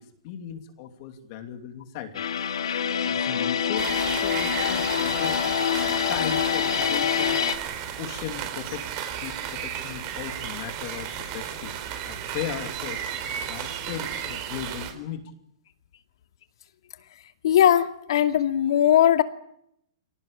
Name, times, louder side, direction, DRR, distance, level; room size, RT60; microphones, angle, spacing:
voice 1, 0.0-2.2 3.1-7.4 8.0-8.9 9.2-11.8 12.0-15.3, left 9 dB, 40° left, 5 dB, 2.8 m, -37 dB
sound 1, 2.1-7.5, left 8 dB, 85° left, 2.4 m, -25 dB
sound 2, 3.8-14.9, right 9 dB, 35° right, 4.6 m, -34 dB
voice 2, 17.4-19.2, left 10 dB, 65° left, 7 dB, 2.5 m, -19 dB
27.0 x 18.5 x 8.8 m, 0.77 s
hypercardioid pair, 155°, 3 cm